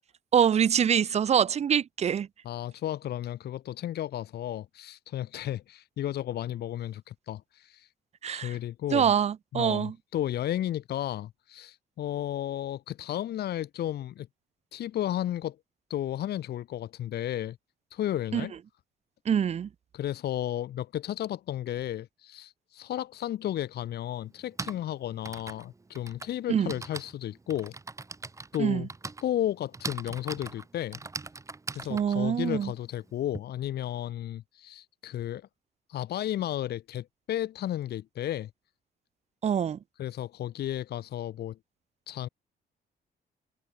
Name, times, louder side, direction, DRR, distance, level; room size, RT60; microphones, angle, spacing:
voice 1, 0.3-2.3 8.2-8.6 8.9-9.9 18.3-18.5 19.3-19.7 26.5-26.7 28.6-28.9 31.9-32.7 39.4-39.8, right 8 dB, 40° right, 0.7 m, -25 dB
voice 2, 2.4-7.9 8.3-9.1 9.5-14.3 14.7-15.6 15.9-17.6 17.9-18.5 19.9-27.7 28.5-28.9 29.2-31.0 31.7-35.5 35.9-38.5 40.0-41.6 42.1-42.3, left 12 dB, 65° left, 0.8 m, -33 dB
Typing, 23.2-23.3 24.3-33.4, right 3 dB, 15° right, 2.3 m, -41 dB
cardioid pair, 160°, 18 cm